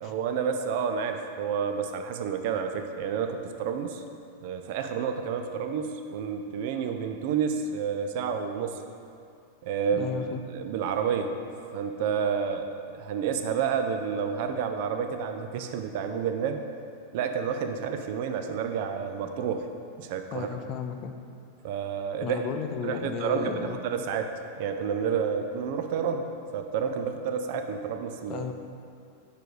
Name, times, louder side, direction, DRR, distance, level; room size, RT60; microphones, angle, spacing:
voice 1, 0.0-4.0 4.4-8.8 9.6-11.3 11.7-16.6 17.1-19.7 20.0-20.6 21.6-22.4 22.8-24.3 24.6-26.3 26.5-28.5, right 7 dB, 50° right, 6 dB, 0.4 m, -30 dB
voice 2, 9.9-10.4 20.3-21.1 22.2-23.8 28.3-28.5, left 7 dB, 35° left, 6 dB, 0.4 m, -34 dB
5.0 x 4.6 x 4.6 m, 2.5 s
figure-of-eight pair, 90°, 0 cm